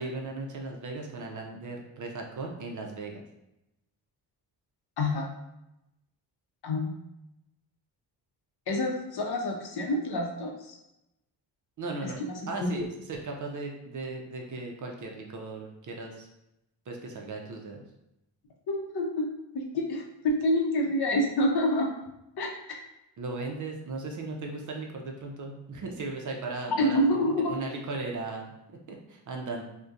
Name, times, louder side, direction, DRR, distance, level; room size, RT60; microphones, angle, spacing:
voice 1, 0.0-3.2 11.8-12.2 12.5-16.3 16.9-17.8 23.2-27.0 27.5-28.5 28.9-29.7, right 3 dB, 40° right, 1 dB, 0.5 m, -37 dB
voice 2, 8.7-10.8 12.0-12.3 12.6-12.7 18.7-19.3 19.5-21.9 22.4-22.5 26.7-27.6, left 1 dB, 55° left, 1 dB, 0.7 m, -27 dB
2.6 x 2.2 x 2.3 m, 0.88 s
cardioid pair, 65°, 46 cm